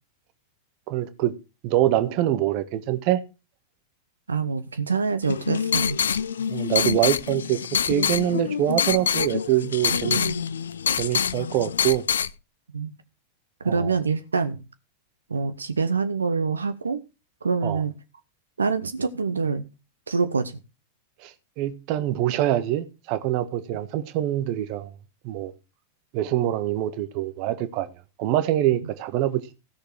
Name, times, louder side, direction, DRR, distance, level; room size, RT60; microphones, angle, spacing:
voice 1, 0.9-1.3 1.6-3.2 6.5-7.6 7.9-10.2 10.9-12.0 13.6-13.9 17.6-17.8 21.2-24.9 25.2-25.5 26.1-27.9 28.2-29.4, right 13 dB, 45° right, 1.3 m, -24 dB
voice 2, 4.3-6.0 10.0-10.4 12.7-12.9 13.6-14.6 15.3-17.0 17.4-17.9 18.6-19.6 20.1-20.6, right 5 dB, 75° right, 0.8 m, -26 dB
sound 1, 5.2-12.3, left 7 dB, 70° left, 0.6 m, -26 dB
16.0 x 6.7 x 4.7 m
figure-of-eight pair, 90°, 0 cm